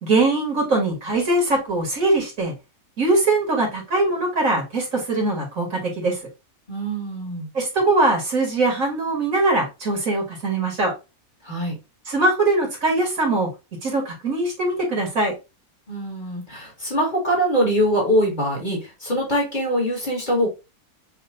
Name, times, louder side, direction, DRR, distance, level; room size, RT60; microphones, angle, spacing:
voice 1, 0.0-2.5 3.0-6.2 7.5-10.9 12.1-13.5 13.8-15.3, right 2 dB, 60° right, -1 dB, 2.2 m, -21 dB
voice 2, 6.7-7.5 11.4-11.8 15.9-20.5, equal, 30° left, -2 dB, 2.3 m, -23 dB
5.6 x 3.0 x 2.6 m, 0.26 s
omnidirectional pair, 1.6 m